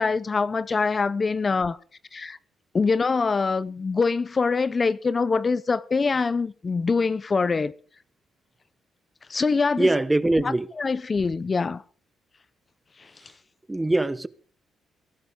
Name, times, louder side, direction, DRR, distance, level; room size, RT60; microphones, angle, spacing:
voice 1, 0.0-1.8 2.1-2.4 2.7-7.7 9.3-9.9 10.8-11.8 13.0-13.1, left 4 dB, 35° left, 0.6 m, -24 dB
voice 2, 9.8-10.7 13.7-14.3, right 2 dB, 15° right, 1.0 m, -22 dB
22.5 x 12.0 x 3.7 m
cardioid pair, 90°, 0 cm